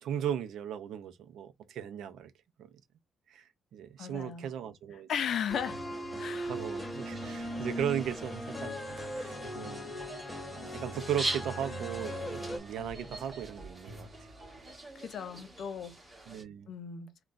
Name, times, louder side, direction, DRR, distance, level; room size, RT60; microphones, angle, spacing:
voice 1, 0.0-2.3 2.6-2.7 3.3-5.1 6.4-8.7 9.1-10.0 10.8-14.1 16.3-16.7, right 9 dB, 80° right, 0.5 m, -37 dB
voice 2, 4.0-4.5 5.1-5.8 6.2-6.5 14.9-16.0 16.7-17.1, left 8 dB, 60° left, 0.5 m, -35 dB
sound 1, 5.5-12.6, equal, 10° left, 1.0 m, -38 dB
sound 2, 6.3-16.4, right 1 dB, 15° right, 1.2 m, -44 dB
sound 3, 7.1-14.8, right 1 dB, 45° right, 1.9 m, -52 dB
3.7 x 2.2 x 2.4 m
cardioid pair, 140°, 0 cm